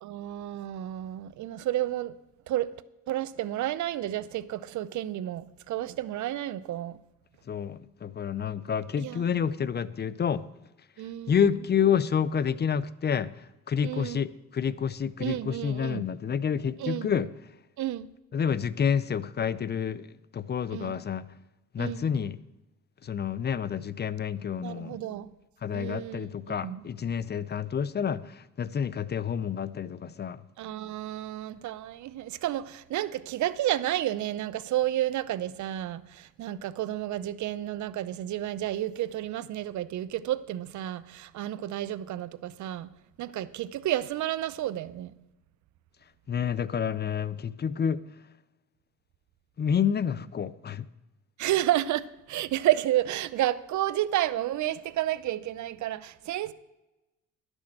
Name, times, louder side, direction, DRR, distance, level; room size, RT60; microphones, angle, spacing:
voice 1, 0.0-2.1 2.5-2.8 3.1-7.0 9.0-9.3 11.0-11.4 13.8-14.3 15.2-16.0 16.8-17.1 17.8-18.1 20.7-21.0 21.8-22.1 24.6-25.3 25.7-26.9 30.6-42.9 43.2-45.1 51.4-56.5, right 13 dB, 70° right, 0.6 m, -31 dB
voice 2, 7.5-10.4 11.3-13.3 13.7-17.3 18.3-21.2 21.7-22.4 23.0-25.0 25.6-30.4 46.3-48.0 49.6-50.8, left 7 dB, 35° left, 0.5 m, -29 dB
11.5 x 6.3 x 7.6 m
cardioid pair, 90°, 30 cm